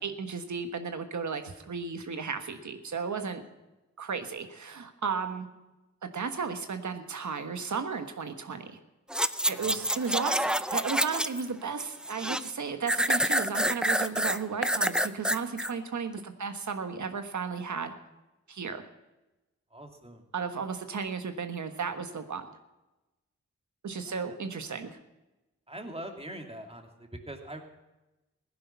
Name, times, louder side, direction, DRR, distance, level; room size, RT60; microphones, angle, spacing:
voice 1, 0.0-3.4 4.0-5.5 6.0-8.8 9.5-17.9 18.5-18.9 20.3-22.4 23.8-25.0, right 5 dB, 80° right, 7 dB, 1.4 m, -34 dB
sound 1, 9.1-11.5 11.8-12.5 12.9-15.7 16.2-16.3, equal, 5° right, 0.5 m, -27 dB
voice 2, 9.5-9.8 19.7-20.2 24.0-24.4 25.7-27.6, right 1 dB, 20° right, 4 dB, 2.4 m, -43 dB
16.0 x 10.5 x 5.7 m, 1.0 s
cardioid pair, 60°, 29 cm